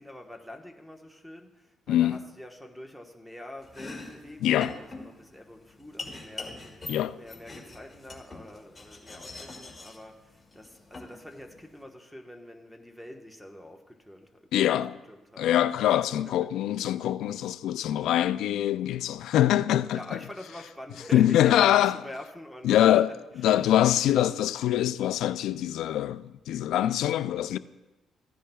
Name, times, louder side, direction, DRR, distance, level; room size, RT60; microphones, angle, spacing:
voice 1, 0.0-6.9 7.1-16.5 17.4-17.5 19.9-23.6 23.9-24.1, left 1 dB, ahead, 1.2 m, -46 dB
voice 2, 1.9-2.2 4.4-4.8 6.9-7.2 14.5-15.0 15.4-20.2 21.1-22.0 22.6-23.1 23.4-27.6, left 12 dB, 85° left, 0.3 m, -24 dB
Domestic sounds home sounds, 3.6-11.8, left 3 dB, 15° left, 2.3 m, -44 dB
15.5 x 10.0 x 2.3 m
cardioid pair, 90°, 0 cm